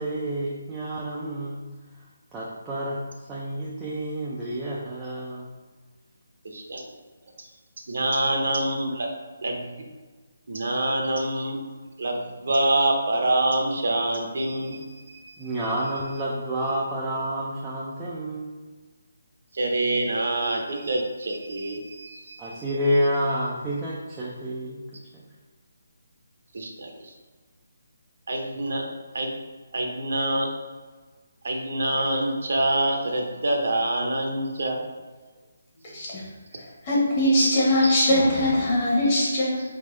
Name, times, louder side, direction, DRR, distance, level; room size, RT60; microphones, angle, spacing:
voice 1, 0.0-1.6 2.3-5.5 15.4-18.5 22.4-24.8 25.1-25.2, equal, 10° right, -7 dB, 0.3 m, -29 dB
voice 2, 6.4-6.8 7.9-9.1 9.4-9.8 10.5-11.6 12.0-15.5 19.5-22.6 26.5-27.1 28.3-28.8 29.1-29.3 29.7-30.5 31.4-34.8 36.0-36.2 37.8-37.9, right 1 dB, 55° right, 2 dB, 0.7 m, -26 dB
voice 3, 36.6-39.6, left 1 dB, 20° left, -6 dB, 1.0 m, -21 dB
4.1 x 3.6 x 3.1 m, 1.4 s
hypercardioid pair, 175°, 0 cm